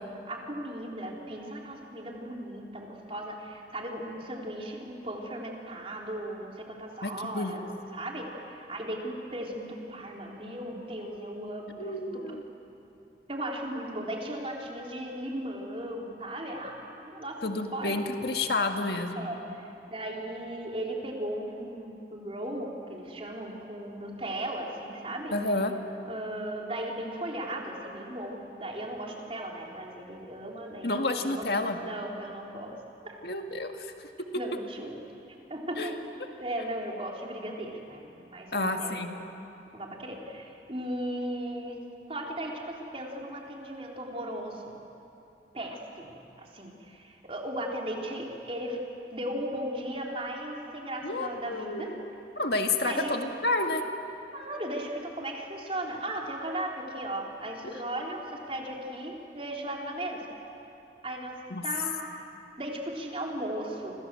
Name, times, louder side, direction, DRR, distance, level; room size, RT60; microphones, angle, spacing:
voice 1, 0.3-7.7 7.9-12.2 13.3-17.4 17.7-18.3 19.2-25.4 26.1-31.5 31.8-32.7 33.0-33.1 34.4-35.0 35.5-36.0 36.4-39.3 39.7-41.8 42.1-44.7 45.5-48.8 49.1-51.9 52.8-53.1 54.3-60.2 61.0-61.9 62.6-64.0, right 1 dB, 30° right, -1 dB, 3.9 m, -37 dB
voice 2, 7.0-7.5 11.8-12.4 17.4-19.3 25.3-25.7 30.8-31.8 33.2-34.1 35.8-35.9 38.5-39.1 51.0-52.0 52.4-53.8 57.6-57.8 61.5-61.6, left 2 dB, 65° left, 4 dB, 1.9 m, -30 dB
29.5 x 26.5 x 7.7 m, 2.8 s
head